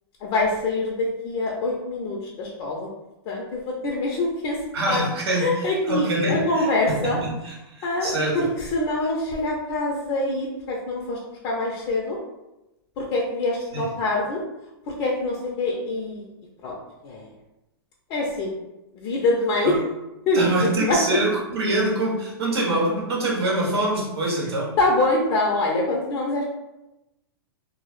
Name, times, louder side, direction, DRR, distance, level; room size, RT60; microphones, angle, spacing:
voice 1, 0.2-2.9 3.3-5.1 5.4-7.2 7.8-12.2 13.0-14.4 14.9-16.3 16.6-17.3 18.1-18.5 18.9-19.9 20.3-21.2 24.4-24.5 24.8-26.4, left 2 dB, 35° left, -2 dB, 0.4 m, -25 dB
voice 2, 4.7-5.5 5.9-6.4 6.9-8.4 19.6-19.7 20.3-24.8, right 2 dB, 80° right, -2 dB, 0.8 m, -24 dB
2.0 x 2.0 x 3.0 m, 0.95 s
hypercardioid pair, 130°, 13 cm